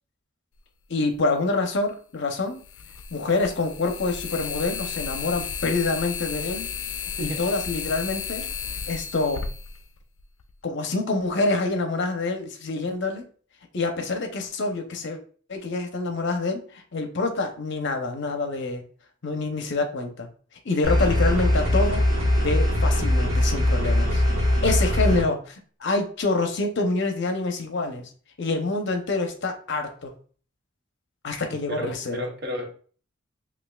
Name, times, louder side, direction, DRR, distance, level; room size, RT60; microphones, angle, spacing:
voice 1, 0.9-2.6 3.1-6.7 7.2-8.5 8.9-9.4 10.6-13.2 13.7-15.2 15.5-18.8 19.2-20.3 20.6-22.0 22.4-24.2 24.6-28.1 28.4-30.1 31.2-32.3, left 3 dB, 65° left, 5 dB, 0.7 m, -26 dB
sound 1, 1.1-1.2 2.6-10.5, left 6 dB, 85° left, 0.4 m, -33 dB
sound 2, 20.8-25.2, left 1 dB, 90° right, 1.3 m, -21 dB
voice 2, 31.7-32.7, equal, 55° right, 2 dB, 0.9 m, -32 dB
5.5 x 2.4 x 2.3 m, 0.42 s
head